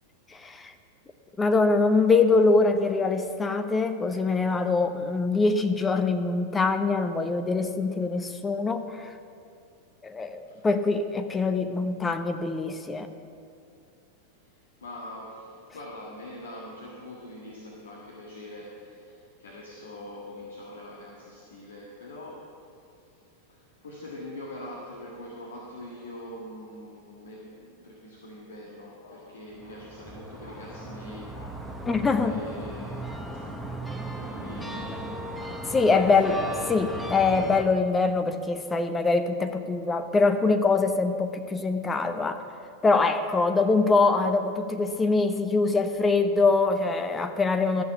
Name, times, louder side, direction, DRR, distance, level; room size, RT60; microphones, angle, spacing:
voice 1, 0.3-0.7 1.4-9.1 10.0-13.1 31.9-32.4 35.7-36.4 36.7-42.4 42.8-47.8, left 3 dB, 15° left, 8 dB, 0.7 m, -24 dB
voice 2, 14.4-31.9 32.2-33.8 34.1-36.3, left 1 dB, 65° left, -3 dB, 1.6 m, -44 dB
sound 1, 29.5-37.6, right 1 dB, ahead, 1.0 m, -37 dB
13.5 x 6.8 x 7.0 m, 2.4 s
figure-of-eight pair, 90°, 0 cm